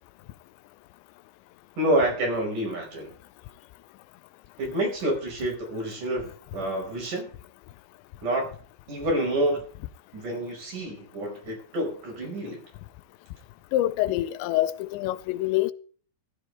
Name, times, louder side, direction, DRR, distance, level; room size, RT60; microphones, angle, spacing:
voice 1, 1.8-3.1 4.6-7.3 8.2-8.5 8.9-9.6 10.1-12.6, right 1 dB, 45° right, 6.3 m, -28 dB
voice 2, 13.7-15.7, left 15 dB, 85° left, 3.0 m, -25 dB
15.0 x 13.0 x 3.4 m
omnidirectional pair, 5.1 m